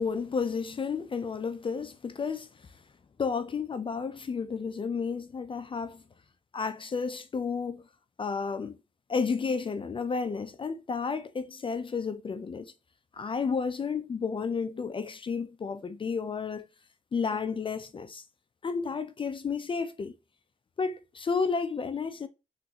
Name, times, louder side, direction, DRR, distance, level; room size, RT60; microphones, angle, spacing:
voice 1, 0.0-2.7 3.2-6.0 6.5-7.8 8.2-8.8 9.1-12.7 13.1-16.6 17.1-18.2 18.6-20.1 20.8-22.3, left 5 dB, 35° left, 0.4 m, -32 dB
3.7 x 2.5 x 2.8 m
cardioid pair, 65°, 14 cm